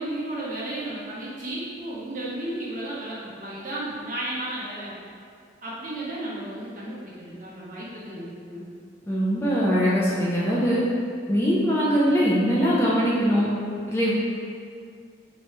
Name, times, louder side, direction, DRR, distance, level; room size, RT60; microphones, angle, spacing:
voice 1, 0.0-4.9 5.6-8.6, right 1 dB, 45° right, -8 dB, 1.1 m, -33 dB
voice 2, 9.1-10.8 11.3-13.5 13.9-14.1, equal, 15° left, -7 dB, 0.5 m, -22 dB
4.6 x 3.0 x 3.2 m, 2.3 s
head